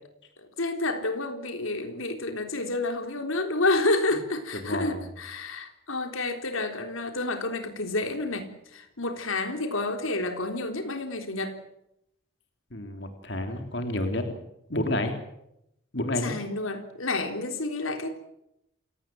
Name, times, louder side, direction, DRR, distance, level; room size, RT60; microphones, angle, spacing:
voice 1, 0.6-11.6 16.2-18.1, left 2 dB, 80° left, 6 dB, 3.8 m, -29 dB
voice 2, 4.6-5.0 12.7-14.4 14.7-15.1 15.9-16.4, left 1 dB, 55° left, 6 dB, 3.4 m, -30 dB
28.5 x 17.5 x 7.8 m, 0.81 s
head